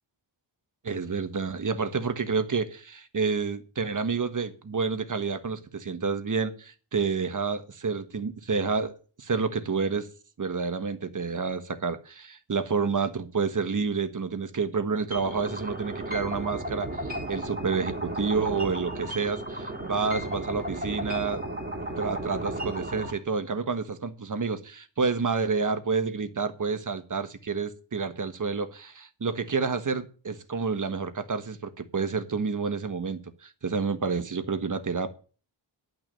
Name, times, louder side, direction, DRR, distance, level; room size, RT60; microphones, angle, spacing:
voice 1, 0.8-10.1 10.4-21.4 22.0-35.1, right 5 dB, 40° right, 1.4 m, -29 dB
sound 1, 15.1-23.1, right 1 dB, 20° right, 3.7 m, -34 dB
11.0 x 5.9 x 8.9 m
wide cardioid pair, 115°, 46 cm